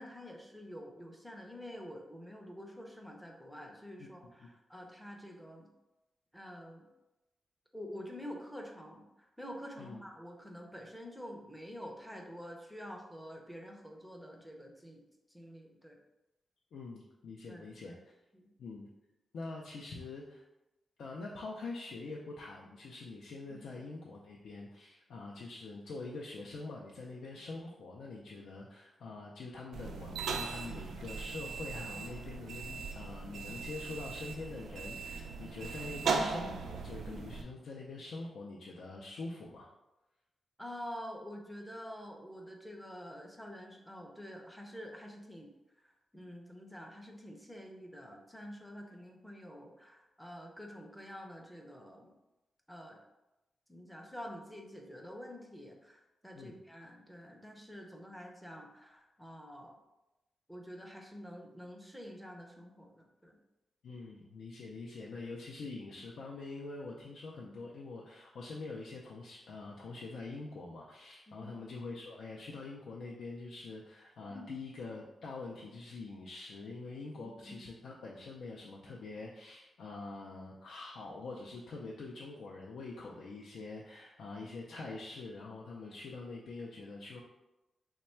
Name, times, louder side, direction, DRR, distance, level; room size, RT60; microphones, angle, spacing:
voice 1, 0.0-5.7 6.3-6.9 7.7-16.0 17.5-18.0 18.3-18.5 23.5-23.8 40.6-45.5 45.8-52.1 52.7-53.0 53.7-59.8 60.5-63.4 71.3-71.5 74.3-74.5 77.2-77.6, equal, ahead, 1 dB, 0.5 m, -48 dB
voice 2, 4.0-4.5 9.8-10.0 16.7-18.1 18.6-18.9 19.3-20.4 21.0-39.7 56.3-56.6 63.8-87.2, left 3 dB, 75° left, -2 dB, 0.4 m, -45 dB
sound 1, 29.7-37.4, right 4 dB, 85° right, 0.4 m, -38 dB
3.2 x 2.2 x 4.3 m, 0.99 s
wide cardioid pair, 150°, 0 cm